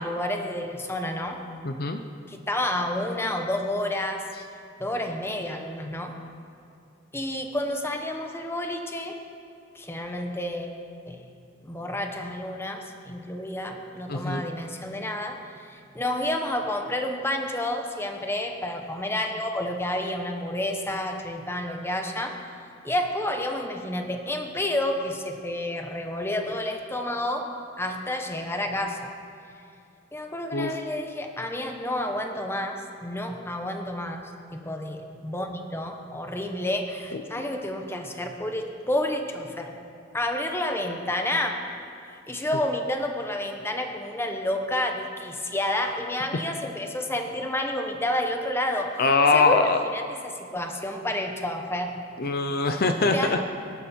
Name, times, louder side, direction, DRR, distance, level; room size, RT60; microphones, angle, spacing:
voice 1, 0.0-1.4 2.3-4.3 4.8-6.1 7.1-9.2 9.7-10.7 11.1-11.2 11.6-15.4 15.7-22.4 22.8-27.5 27.8-29.1 30.1-39.7 40.1-41.6 42.1-49.0 49.3-52.0 53.0-53.4, left 1 dB, 15° left, 4 dB, 1.1 m, -30 dB
voice 2, 1.6-2.0 14.1-14.4 30.5-30.8 37.1-37.2 49.0-49.8 52.2-53.4, left 3 dB, 50° left, 6 dB, 0.7 m, -22 dB
21.5 x 11.5 x 4.5 m, 2.5 s
head